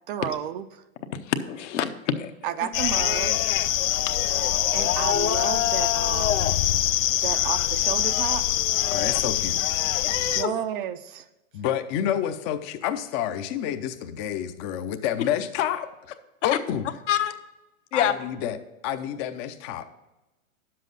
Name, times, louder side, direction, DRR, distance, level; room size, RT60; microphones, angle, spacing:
voice 1, 0.1-0.8 2.4-3.6 4.7-6.6 7.2-8.5 10.3-11.3, right 10 dB, 40° right, 11 dB, 0.5 m, -32 dB
voice 2, 1.3-2.3 10.0-10.5 17.1-17.3 17.9-18.1, left 9 dB, 60° left, 7 dB, 1.1 m, -26 dB
sound 1, 2.7-10.4, left 12 dB, 75° left, 0.6 m, -24 dB
voice 3, 8.9-9.6 11.5-15.9 16.4-16.9 17.9-18.6 18.8-19.9, left 10 dB, 25° left, 8 dB, 0.6 m, -28 dB
10.5 x 7.6 x 4.0 m, 1.0 s
hypercardioid pair, 135°, 41 cm